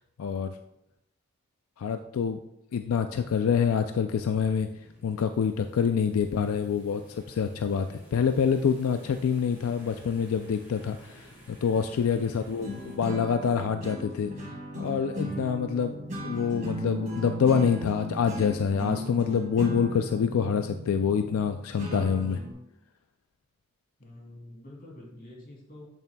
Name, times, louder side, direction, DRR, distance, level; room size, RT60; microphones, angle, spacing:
voice 1, 0.2-0.5 1.8-2.4 2.7-4.7 5.0-11.2 11.5-14.3 14.8-16.0 16.2-22.4, left 7 dB, 85° left, 8 dB, 0.4 m, -26 dB
sound 1, 4.6-13.0, equal, 10° right, 2.7 m, -53 dB
voice 2, 12.1-12.9 24.0-25.9, left 1 dB, 45° left, -3 dB, 2.4 m, -47 dB
Progressive Random, 12.6-22.5, right 1 dB, 35° right, 2.3 m, -37 dB
8.4 x 6.9 x 2.2 m, 0.83 s
head